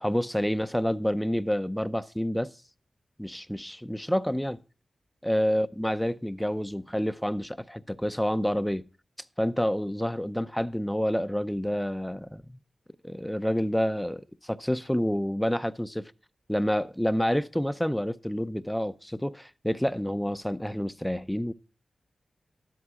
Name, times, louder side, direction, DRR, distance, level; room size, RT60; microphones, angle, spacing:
voice 1, 0.0-2.5 3.2-4.6 5.2-8.9 9.4-12.6 13.0-16.0 16.5-21.5, equal, 5° left, 0.6 m, -28 dB
13.0 x 11.0 x 3.7 m
wide cardioid pair, 95°, 0 cm